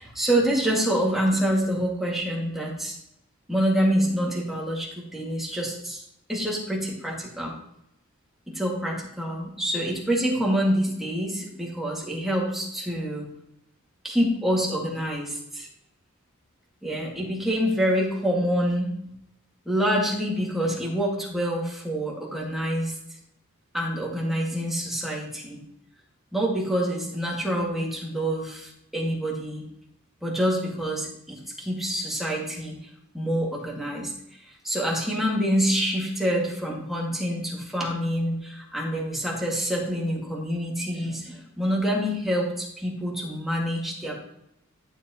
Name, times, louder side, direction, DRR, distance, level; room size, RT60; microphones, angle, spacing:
voice 1, 0.0-3.0 3.5-6.0 6.3-7.6 8.5-13.3 14.0-15.7 16.8-18.9 19.7-23.0 23.7-25.6 26.3-29.7 30.2-34.1 34.4-44.2, equal, ahead, -3 dB, 2.3 m, -26 dB
12.0 x 7.5 x 3.1 m, 0.79 s
head